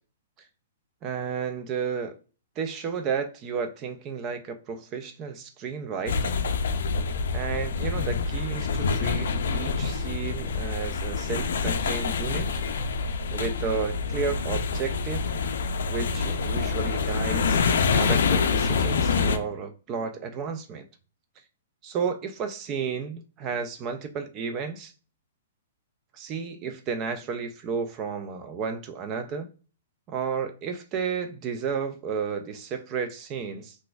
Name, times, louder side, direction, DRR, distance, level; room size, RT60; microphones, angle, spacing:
voice 1, 1.0-2.1 2.6-6.4 7.3-12.5 13.3-15.3 15.9-20.9 21.8-24.9 26.1-29.5 30.1-33.8, right 6 dB, 25° right, 0.3 m, -32 dB
sound 1, 6.1-19.4, left 5 dB, 75° left, 0.4 m, -26 dB
3.9 x 2.5 x 2.3 m
hypercardioid pair, 155°, 0 cm